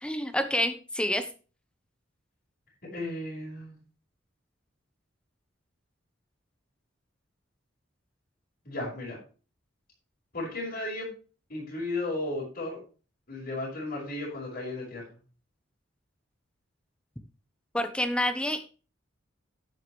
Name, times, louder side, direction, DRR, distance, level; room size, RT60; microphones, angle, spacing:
voice 1, 0.0-1.2 17.7-18.6, left 1 dB, 5° left, 9 dB, 0.8 m, -28 dB
voice 2, 2.9-3.8 8.6-9.2 10.3-11.1 11.5-12.8 13.3-15.0, left 2 dB, 50° left, -5 dB, 4.9 m, -34 dB
10.5 x 9.5 x 3.2 m, 0.35 s
head